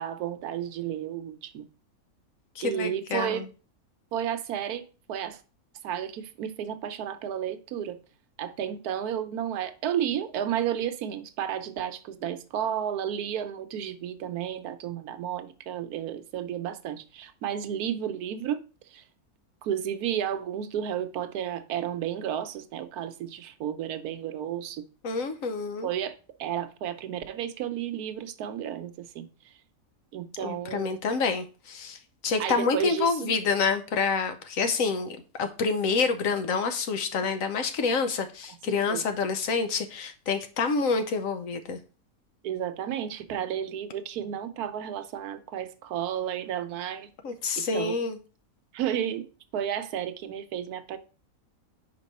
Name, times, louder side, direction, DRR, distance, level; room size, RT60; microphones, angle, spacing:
voice 1, 0.0-1.6 2.6-3.4 4.1-4.8 5.1-5.4 5.8-8.0 8.4-18.6 18.9-19.0 19.6-24.8 25.8-29.5 30.1-31.0 32.4-33.3 38.9-39.0 42.4-47.1 47.6-48.0 48.7-49.3 49.5-51.0, right 9 dB, 80° right, 1.1 m, -32 dB
voice 2, 2.6-3.5 25.0-25.9 30.4-41.8 47.2-48.2, left 4 dB, 65° left, 1.0 m, -28 dB
5.2 x 4.8 x 4.1 m
omnidirectional pair, 1.6 m